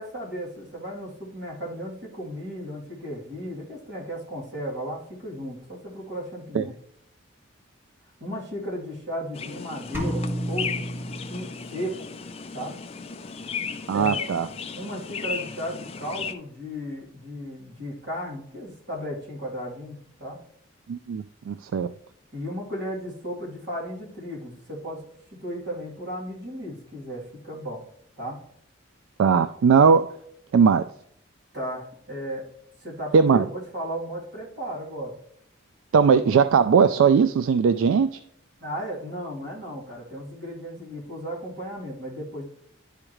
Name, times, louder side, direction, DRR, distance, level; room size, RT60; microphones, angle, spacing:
voice 1, 0.0-6.7 8.2-10.8 11.3-11.9 12.5-12.8 13.9-14.2 14.7-20.4 22.3-25.0 25.3-27.8 28.2-28.4 31.5-32.4 32.8-35.2 38.6-42.4, equal, 55° right, -4 dB, 2.8 m, -35 dB
sound 1, 9.3-16.3, left 6 dB, 30° left, 0.4 m, -35 dB
sound 2, 9.9-11.9, equal, 10° right, 1.4 m, -31 dB
voice 2, 13.9-14.5 20.9-21.9 29.2-30.1 30.5-30.9 33.1-33.5 35.9-38.1, right 6 dB, 75° right, 12 dB, 0.3 m, -19 dB
11.0 x 5.0 x 3.0 m, 0.68 s
head